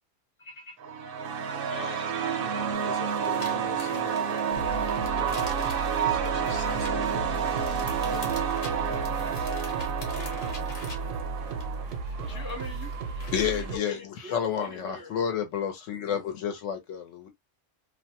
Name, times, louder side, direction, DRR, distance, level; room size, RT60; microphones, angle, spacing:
voice 1, 0.4-0.8 1.7-2.0 10.2-10.6 12.2-12.9 13.2-15.1, left 3 dB, 15° right, 0.4 m, -41 dB
sound 1, 0.8-11.8, right 7 dB, 60° right, 0.6 m, -29 dB
voice 2, 2.4-9.7 12.2-12.7, left 5 dB, 35° left, 0.7 m, -45 dB
sound 2, 2.7-13.7, left 3 dB, 60° left, 1.1 m, -46 dB
sound 3, 4.5-13.8, right 4 dB, 80° right, 0.9 m, -35 dB
voice 3, 13.3-17.3, left 8 dB, 80° left, 1.1 m, -30 dB
2.6 x 2.2 x 2.8 m
omnidirectional pair, 1.3 m